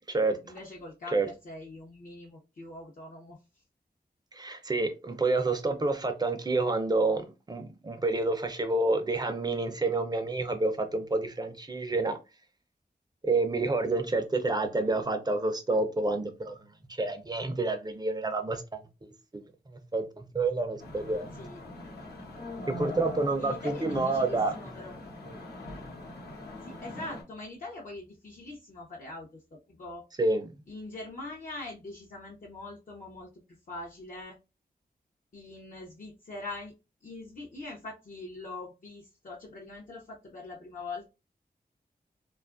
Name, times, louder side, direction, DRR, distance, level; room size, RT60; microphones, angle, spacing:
voice 1, 0.4-3.4 14.6-14.9 21.3-21.6 23.4-24.9 26.6-30.0 30.7-33.3 33.7-34.4 35.3-36.7 37.0-41.1, left 2 dB, 55° left, 0.6 m, -43 dB
voice 2, 4.3-12.2 13.2-16.6 16.9-19.4 19.7-21.3 22.7-24.5 25.3-25.4 30.2-30.5, right 2 dB, 25° right, 0.5 m, -29 dB
sound 1, 20.8-27.2, left 1 dB, 85° left, 0.9 m, -41 dB
2.8 x 2.3 x 2.4 m
wide cardioid pair, 90°, 16 cm